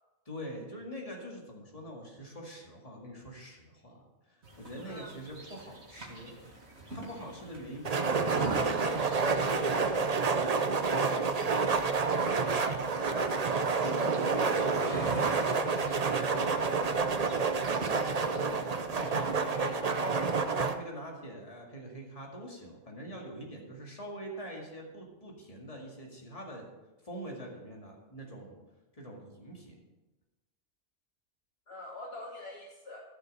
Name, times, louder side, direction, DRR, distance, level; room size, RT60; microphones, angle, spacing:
voice 1, 0.3-6.3 6.9-10.0 13.8-20.1 20.6-26.7 27.0-28.6 28.9-29.7, equal, 25° left, -1 dB, 2.2 m, -44 dB
sound 1, 4.4-19.5, right 2 dB, 60° right, 2.3 m, -45 dB
sound 2, 7.9-20.7, right 4 dB, 40° right, 0.6 m, -29 dB
voice 2, 11.9-13.7 14.2-14.7 19.5-20.0 31.7-33.0, left 1 dB, 55° left, -2 dB, 1.5 m, -45 dB
13.5 x 6.8 x 5.4 m, 1.1 s
omnidirectional pair, 1.3 m